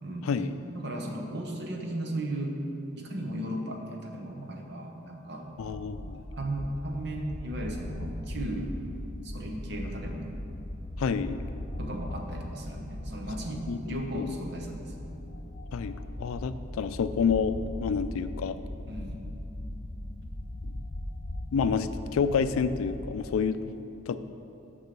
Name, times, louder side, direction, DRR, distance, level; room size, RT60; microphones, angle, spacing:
voice 1, 0.7-2.6 3.0-5.5 6.4-8.8 9.2-10.3 11.8-14.9 18.9-19.2, right 1 dB, 50° right, 2 dB, 0.9 m, -36 dB
voice 2, 5.6-6.2 11.0-11.4 13.7-13.8 14.1-14.3 15.7-18.6 21.5-23.7 24.1-24.2, left 6 dB, 90° left, 12 dB, 0.4 m, -28 dB
sound 1, 5.6-23.4, left 1 dB, 45° left, 0.8 m, -39 dB
6.7 x 5.4 x 6.7 m, 2.8 s
head